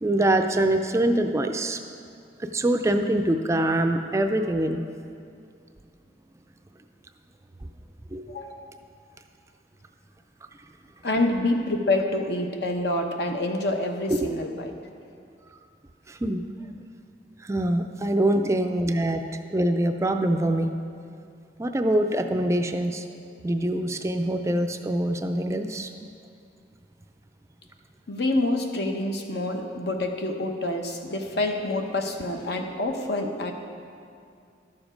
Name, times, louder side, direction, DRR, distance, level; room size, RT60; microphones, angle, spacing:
voice 1, 0.0-1.8 2.5-4.8 8.1-8.2 14.1-14.3 16.1-16.4 17.4-20.7 21.6-23.1 23.4-25.9, right 1 dB, 15° right, 6 dB, 0.4 m, -24 dB
voice 2, 8.3-8.7 11.0-14.7 19.2-19.3 28.1-33.5, left 2 dB, 65° left, 4 dB, 0.9 m, -27 dB
12.0 x 7.1 x 5.1 m, 2.4 s
head